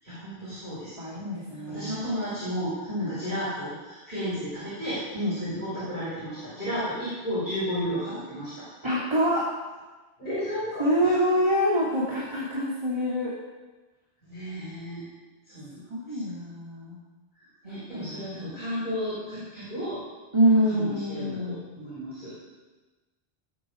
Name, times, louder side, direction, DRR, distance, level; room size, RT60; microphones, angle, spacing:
voice 1, 0.0-0.9 1.7-5.0 5.4-8.7 10.2-11.1 14.3-15.1 15.5-15.8 16.1-16.2 17.6-20.0 20.7-22.3, equal, 45° left, -11 dB, 6.0 m, -33 dB
voice 2, 1.0-2.0 2.9-3.1 5.1-5.4 8.8-9.5 10.8-13.3 15.9-17.0 17.6-18.6 20.3-21.6, equal, 25° right, -6 dB, 2.7 m, -26 dB
20.0 x 8.7 x 5.1 m, 1.2 s
omnidirectional pair, 1.1 m